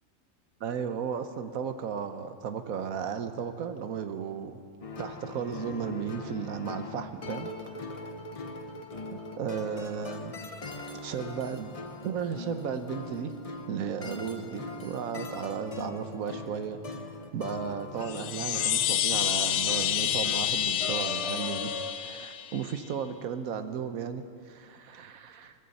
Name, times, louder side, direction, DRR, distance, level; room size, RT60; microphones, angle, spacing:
voice 1, 0.6-4.6 5.0-7.5 9.1-10.4 10.9-11.7 12.0-13.3 13.7-16.8 17.3-25.5, right 7 dB, 75° right, 9 dB, 1.3 m, -35 dB
sound 1, 4.8-21.9, left 2 dB, 35° left, 0.7 m, -40 dB
Chime, 18.0-22.7, left 11 dB, 80° left, 1.0 m, -29 dB
20.5 x 14.5 x 4.1 m, 2.5 s
omnidirectional pair, 1.5 m